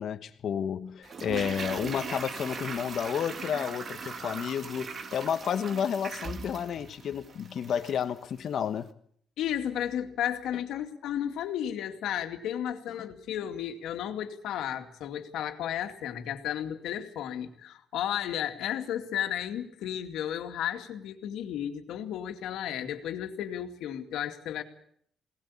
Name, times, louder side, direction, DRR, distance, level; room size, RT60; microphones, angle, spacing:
voice 1, 0.0-8.9, left 8 dB, 65° left, 1.2 m, -31 dB
Toilet flush, 1.0-8.1 8.4-8.5, right 5 dB, 45° right, 2.0 m, -39 dB
voice 2, 9.4-24.6, left 10 dB, 85° left, 2.3 m, -33 dB
21.5 x 18.5 x 8.5 m
cardioid pair, 90°, 0 cm